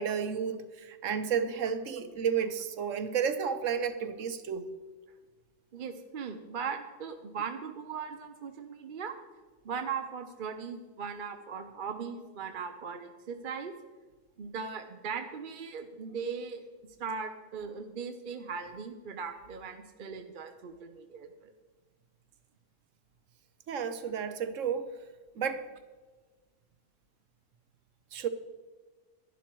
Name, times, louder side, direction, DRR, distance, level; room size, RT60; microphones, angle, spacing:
voice 1, 0.0-4.6 23.7-24.9 25.4-25.7 28.1-28.3, right 7 dB, 85° right, 10 dB, 1.3 m, -32 dB
voice 2, 5.7-9.1 9.6-13.7 14.4-16.7 17.0-21.5, right 6 dB, 50° right, 7 dB, 0.8 m, -39 dB
11.5 x 11.5 x 4.6 m, 1.3 s
omnidirectional pair, 1.3 m